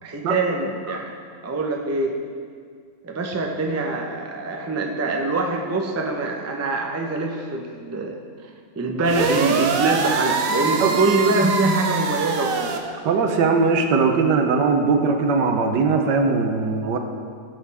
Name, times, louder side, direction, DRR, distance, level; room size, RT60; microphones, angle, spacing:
voice 1, 0.0-1.2 1.4-2.2 3.0-8.2 8.4-8.5 8.8-12.8, right 2 dB, 20° right, 1 dB, 0.4 m, -24 dB
sound 1, 9.0-12.8, right 5 dB, 60° right, 1.1 m, -24 dB
voice 2, 13.0-17.0, right 4 dB, 90° right, 5 dB, 1.5 m, -20 dB
16.0 x 7.5 x 3.5 m, 2.1 s
omnidirectional pair, 1.8 m